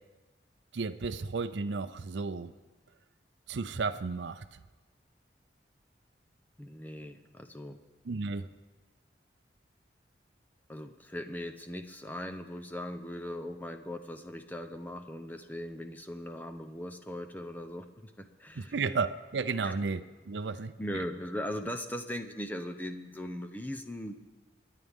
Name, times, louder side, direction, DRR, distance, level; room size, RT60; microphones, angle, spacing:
voice 1, 0.7-2.5 3.5-4.6 8.1-8.5 18.6-21.0, right 4 dB, 90° right, 11 dB, 0.5 m, -33 dB
voice 2, 6.6-7.8 10.7-18.7 19.6-19.7 20.8-24.2, left 1 dB, 10° left, 6 dB, 0.8 m, -39 dB
27.5 x 10.0 x 3.6 m, 1.3 s
head